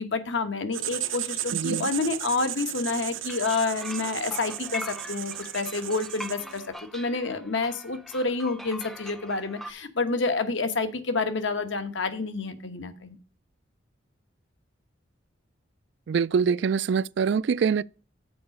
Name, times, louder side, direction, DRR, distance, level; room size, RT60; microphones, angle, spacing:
voice 1, 0.0-6.6 6.9-13.1, left 3 dB, 70° left, 1.1 m, -28 dB
Writing, 0.7-6.7, right 13 dB, 80° right, 0.7 m, -35 dB
voice 2, 1.5-1.9 16.1-17.8, right 6 dB, 60° right, 0.3 m, -24 dB
sound 1, 3.3-9.7, left 1 dB, ahead, 0.5 m, -42 dB
6.9 x 4.8 x 6.4 m
head